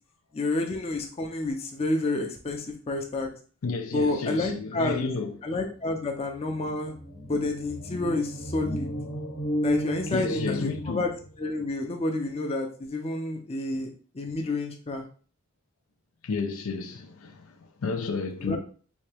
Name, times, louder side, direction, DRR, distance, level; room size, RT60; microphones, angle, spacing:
voice 1, 0.3-3.4 3.9-5.1 5.4-7.0 7.2-8.9 9.6-11.1 11.4-13.9 14.1-15.0 18.4-18.6, left 2 dB, 30° left, 0.5 m, -29 dB
voice 2, 3.6-5.4 10.1-11.0 16.2-18.6, left 4 dB, 85° left, 0.5 m, -31 dB
sound 1, 6.3-11.4, equal, 55° left, 0.9 m, -33 dB
3.4 x 2.7 x 3.3 m
head